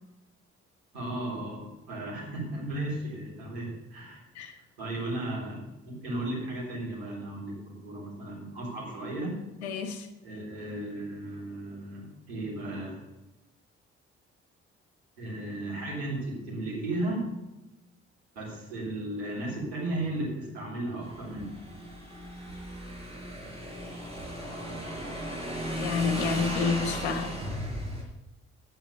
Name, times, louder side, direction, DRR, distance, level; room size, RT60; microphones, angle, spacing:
voice 1, 0.9-4.2 4.8-9.4 10.2-13.0 15.2-17.3 18.4-21.6, right 1 dB, 80° right, -5 dB, 3.7 m, -35 dB
voice 2, 9.6-10.1 25.8-27.3, left 5 dB, 75° left, 7 dB, 1.1 m, -29 dB
Motorcycle / Engine, 21.0-28.0, right 1 dB, 20° right, 4.8 m, -36 dB
9.2 x 9.0 x 6.6 m, 0.98 s
figure-of-eight pair, 40°, 33 cm